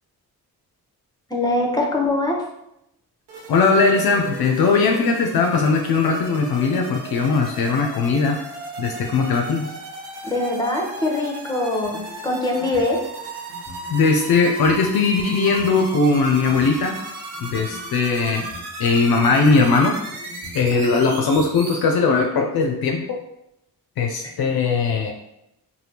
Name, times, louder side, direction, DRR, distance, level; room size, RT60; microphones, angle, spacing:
voice 1, 1.3-2.4 10.2-13.0 20.7-21.0, left 2 dB, 10° left, 0 dB, 0.8 m, -23 dB
sound 1, 3.3-21.8, right 2 dB, 80° right, 0.7 m, -36 dB
voice 2, 3.5-8.4 8.8-9.7 13.9-17.0 17.4-18.5 18.8-20.0 20.5-23.2 24.0-25.1, left 4 dB, 65° left, 3 dB, 0.5 m, -19 dB
sound 2, 11.8-13.0 13.5-14.8 15.4-16.7 17.3-18.7 19.3-20.7 21.2-21.8, equal, 30° right, 1.2 m, -42 dB
3.3 x 2.2 x 2.8 m, 0.82 s
cardioid pair, 55°, 40 cm